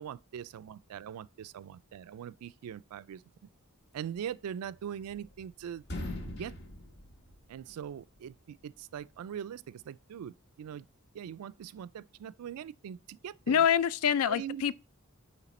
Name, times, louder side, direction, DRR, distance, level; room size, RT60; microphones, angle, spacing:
voice 1, 0.0-3.2 3.9-5.8 6.2-6.6 7.5-10.9 11.1-13.7 14.2-14.7, right 9 dB, 80° right, 0.3 m, -42 dB
sound 1, 4.7-5.5 5.8-7.9, left 1 dB, 50° left, 1.1 m, -41 dB
voice 2, 13.5-14.7, left 8 dB, 80° left, 0.3 m, -26 dB
9.1 x 3.2 x 4.1 m
head